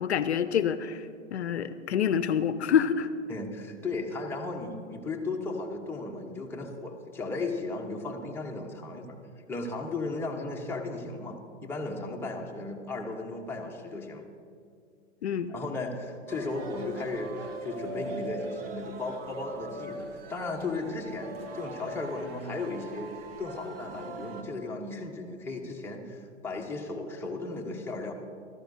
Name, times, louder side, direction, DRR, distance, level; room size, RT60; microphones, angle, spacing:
voice 1, 0.0-3.1 15.2-15.5, left 8 dB, 65° left, 13 dB, 0.6 m, -27 dB
voice 2, 3.3-9.2 9.5-14.2 15.5-23.1 23.4-28.1, left 3 dB, 5° left, -1 dB, 1.0 m, -35 dB
sound 1, 16.3-24.4, right 3 dB, 55° right, 1.1 m, -41 dB
15.0 x 13.5 x 2.7 m, 2.3 s
figure-of-eight pair, 120°, 36 cm